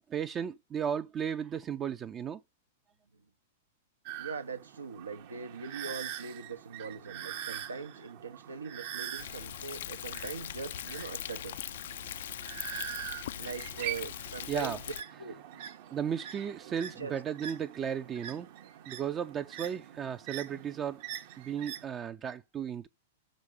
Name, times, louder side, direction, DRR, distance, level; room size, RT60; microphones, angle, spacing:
voice 1, 0.1-2.4 14.5-14.8 15.9-18.5 18.9-21.0 21.4-22.9, right 8 dB, 25° right, 0.5 m, -35 dB
sound 1, 4.1-21.8, right 11 dB, 55° right, 0.9 m, -44 dB
voice 2, 4.2-11.6 13.4-14.8 15.2-15.6 17.0-17.1, right 5 dB, 85° right, 0.9 m, -41 dB
Thunder, 9.2-15.0, left 11 dB, 65° left, 0.4 m, -41 dB
6.4 x 5.1 x 6.5 m
hypercardioid pair, 105°, 0 cm